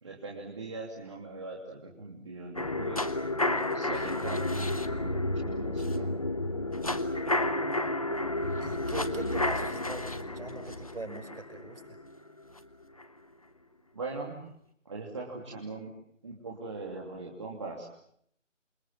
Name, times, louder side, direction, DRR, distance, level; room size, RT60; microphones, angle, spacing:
voice 1, 0.0-3.1 3.6-4.5 4.9-6.1 13.9-14.4 14.8-15.9 16.2-17.9, right 3 dB, 25° right, -2 dB, 3.0 m, -40 dB
sound 1, 2.5-12.6 13.0-13.1, left 2 dB, 30° left, 1.1 m, -31 dB
voice 2, 8.6-12.0, right 2 dB, 45° right, 6 dB, 6.0 m, -41 dB
28.5 x 27.5 x 7.5 m, 0.70 s
figure-of-eight pair, 165°, 38 cm